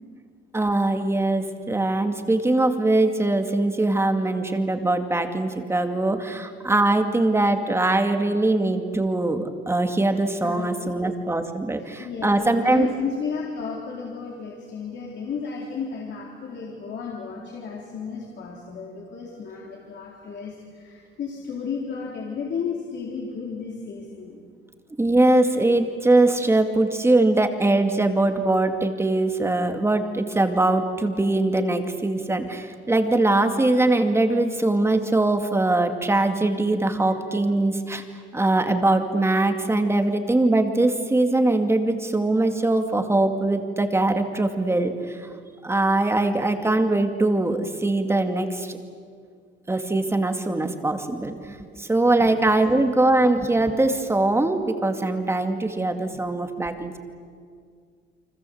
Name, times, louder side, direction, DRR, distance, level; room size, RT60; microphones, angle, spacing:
voice 1, 0.5-12.9 25.0-38.0 38.3-45.3 45.6-48.8 49.7-57.0, right 2 dB, 10° right, 6 dB, 2.3 m, -22 dB
voice 2, 10.4-11.1 11.3-11.4 11.8-24.4 52.2-52.5, left 5 dB, 60° left, -2 dB, 4.0 m, -33 dB
29.5 x 25.0 x 7.9 m, 2.1 s
cardioid pair, 140°, 20 cm